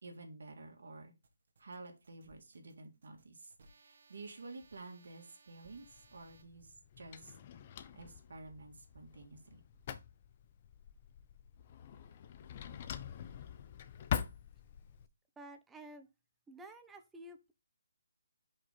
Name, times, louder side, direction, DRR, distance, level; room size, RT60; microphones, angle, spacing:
voice 1, 0.0-1.1 1.6-7.4 7.9-9.6, right 3 dB, 70° right, 3 dB, 2.1 m, -51 dB
sound 1, 1.2-6.4, right 3 dB, 55° right, 1.7 m, -66 dB
Drawer open or close, 5.7-15.1, left 9 dB, 35° left, 0.6 m, -44 dB
voice 2, 15.4-16.1 16.5-17.5, right 1 dB, 5° right, 6 dB, 0.7 m, -52 dB
5.4 x 4.1 x 5.0 m, 0.24 s
hypercardioid pair, 160°, 0 cm